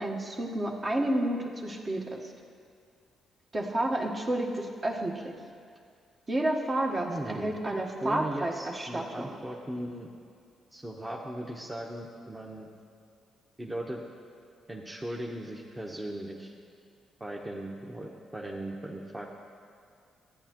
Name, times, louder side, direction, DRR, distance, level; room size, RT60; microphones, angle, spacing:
voice 1, 0.0-2.3 3.5-5.3 6.3-9.3, right 1 dB, 35° right, 0 dB, 1.3 m, -30 dB
voice 2, 7.1-7.5 8.0-10.1 10.7-12.7 13.6-14.0 14.7-16.5 17.2-19.3, right 1 dB, 15° right, -2 dB, 1.0 m, -38 dB
14.0 x 9.1 x 3.0 m, 2.3 s
supercardioid pair, 55°, 0 cm